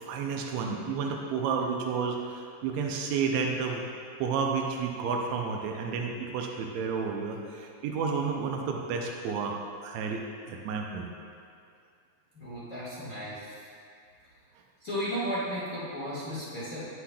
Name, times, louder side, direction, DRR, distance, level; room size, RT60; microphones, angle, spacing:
voice 1, 0.1-3.8 4.2-10.2 10.5-11.1, right 5 dB, 85° right, 1 dB, 1.5 m, -31 dB
voice 2, 12.3-13.6 14.8-16.8, equal, 40° left, -10 dB, 1.2 m, -34 dB
9.8 x 7.5 x 2.2 m, 2.3 s
omnidirectional pair, 3.8 m